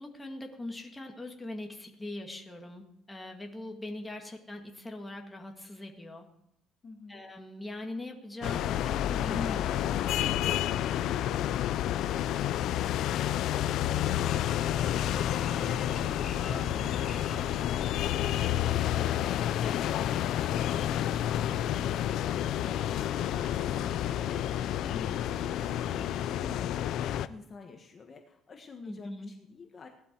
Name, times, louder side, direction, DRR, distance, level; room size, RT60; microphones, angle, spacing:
voice 1, 0.0-6.3 7.1-10.0 19.6-19.9 28.8-29.3, left 2 dB, 10° left, 2 dB, 2.0 m, -41 dB
voice 2, 6.8-7.2 23.8-29.9, left 4 dB, 30° left, 3 dB, 1.5 m, -49 dB
sound 1, 8.4-27.3, left 11 dB, 65° left, 0.6 m, -30 dB
sound 2, 14.2-18.4, left 4 dB, 45° left, 5.1 m, -42 dB
Traffic noise roadway noise, 20.4-26.5, right 3 dB, 45° right, 3.5 m, -50 dB
17.5 x 12.0 x 4.6 m, 0.81 s
cardioid pair, 145°, 0 cm